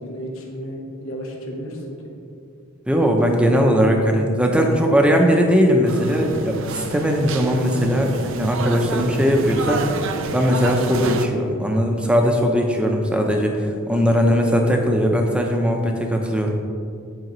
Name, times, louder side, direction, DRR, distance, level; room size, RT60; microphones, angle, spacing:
voice 1, 0.0-1.8 2.0-2.1 12.9-13.0, equal, 70° left, -1 dB, 1.0 m, -33 dB
voice 2, 2.9-9.8 10.3-16.6, equal, 5° right, 2 dB, 0.6 m, -19 dB
sound 1, 5.9-11.3, right 4 dB, 60° right, 0.4 m, -29 dB
9.3 x 4.8 x 3.1 m, 2.4 s
head